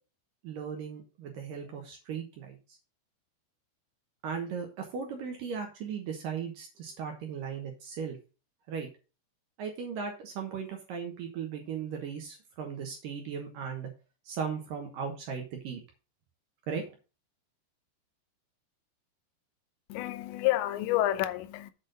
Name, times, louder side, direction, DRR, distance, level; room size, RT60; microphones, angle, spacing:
voice 1, 0.4-2.6 4.2-8.2 8.7-8.9 9.6-13.9 14.3-15.8 16.7-16.9, right 6 dB, 80° right, 1.9 m, -37 dB
voice 2, 19.9-21.7, left 15 dB, 80° left, 2.7 m, -29 dB
8.3 x 4.4 x 6.4 m
omnidirectional pair, 5.8 m